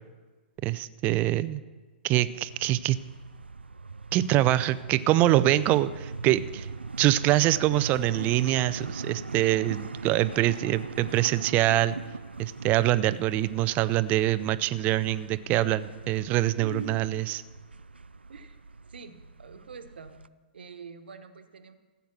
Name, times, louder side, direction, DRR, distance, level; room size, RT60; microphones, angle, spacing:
voice 1, 0.6-1.6 2.0-3.0 4.1-6.7 7.0-11.9 12.4-17.4, right 15 dB, 30° right, 15 dB, 0.5 m, -24 dB
sound 1, 2.5-20.3, right 4 dB, 90° right, 0.4 m, -40 dB
voice 2, 16.6-17.0 18.3-18.6 18.9-20.1 20.5-21.8, right 4 dB, 70° right, 8 dB, 1.3 m, -43 dB
15.0 x 8.0 x 6.0 m, 1.3 s
figure-of-eight pair, 115°, 6 cm